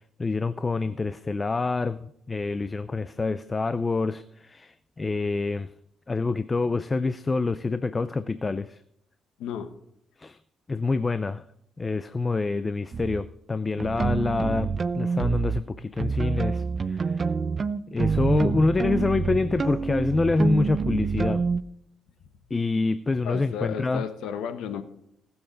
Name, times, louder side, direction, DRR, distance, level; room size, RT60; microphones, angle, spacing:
voice 1, 0.2-5.7 6.1-8.8 10.2-10.4 10.7-11.4 11.8-17.2 17.9-21.4 22.5-24.0, left 3 dB, 25° left, 13 dB, 0.5 m, -26 dB
voice 2, 9.4-9.7 23.2-24.8, left 8 dB, 85° left, 9 dB, 1.3 m, -33 dB
sound 1, 12.9-13.2 13.8-15.6 16.0-21.6, right 5 dB, 40° right, 0.6 m, -27 dB
19.0 x 7.1 x 4.0 m, 0.75 s
cardioid pair, 90°, 0 cm